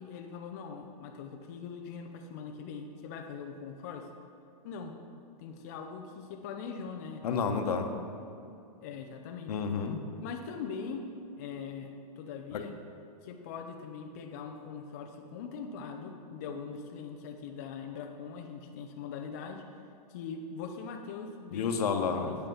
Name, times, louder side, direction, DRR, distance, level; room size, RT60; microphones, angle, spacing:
voice 1, 0.0-4.1 4.6-5.0 5.4-7.3 8.8-9.6 10.2-11.1 11.4-12.8 13.2-19.7 20.1-22.4, left 5 dB, 25° left, 3 dB, 0.4 m, -41 dB
voice 2, 7.2-7.9 9.5-10.0 12.5-12.6 21.5-22.3, left 6 dB, 75° left, 6 dB, 0.9 m, -30 dB
8.8 x 5.4 x 5.5 m, 2.7 s
supercardioid pair, 175°, 20 cm